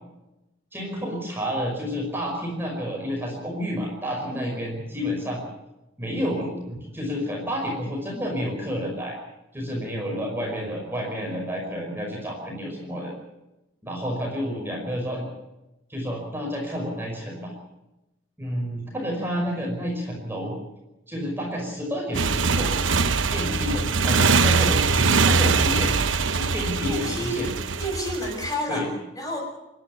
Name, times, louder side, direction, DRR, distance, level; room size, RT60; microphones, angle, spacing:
voice 1, 0.7-5.4 6.0-9.2 9.5-13.1 13.8-15.2 15.9-17.5 18.4-20.5 21.1-22.8 23.3-27.5 28.7-28.9, equal, 10° right, -1 dB, 5.4 m, -30 dB
Motorcycle, 22.1-28.5, right 4 dB, 75° right, 1.0 m, -22 dB
voice 2, 26.9-27.4 27.8-28.9 29.2-29.4, equal, 20° left, 1 dB, 6.9 m, -30 dB
29.5 x 11.5 x 9.5 m, 0.97 s
head